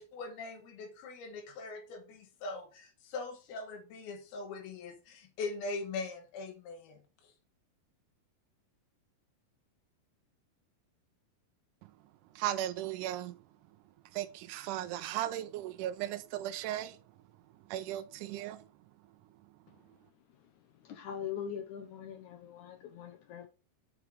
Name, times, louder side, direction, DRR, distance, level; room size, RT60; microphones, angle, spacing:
voice 1, 0.0-7.3, left 3 dB, 85° left, 3.0 m, -41 dB
voice 2, 12.4-13.3 14.2-16.9 17.7-18.6, right 12 dB, 85° right, 1.8 m, -36 dB
voice 3, 20.8-23.5, left 8 dB, 70° left, 2.0 m, -42 dB
6.1 x 5.9 x 5.0 m
omnidirectional pair, 4.3 m